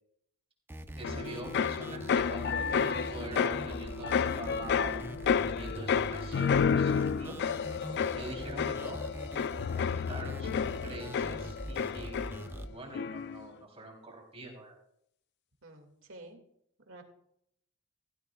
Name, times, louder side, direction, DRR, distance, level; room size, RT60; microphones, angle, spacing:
sound 1, 0.7-12.7, right 1 dB, 10° right, 0.6 m, -43 dB
voice 1, 0.9-7.4 8.1-9.0 9.7-12.4 12.7-14.7, right 2 dB, 30° right, 0 dB, 3.4 m, -45 dB
sound 2, 1.0-12.6 12.9-13.4, left 6 dB, 50° left, 0.3 m, -31 dB
voice 2, 15.6-16.4 16.9-17.0, right 2 dB, 65° right, 4 dB, 2.2 m, -50 dB
17.0 x 13.5 x 2.3 m, 0.72 s
head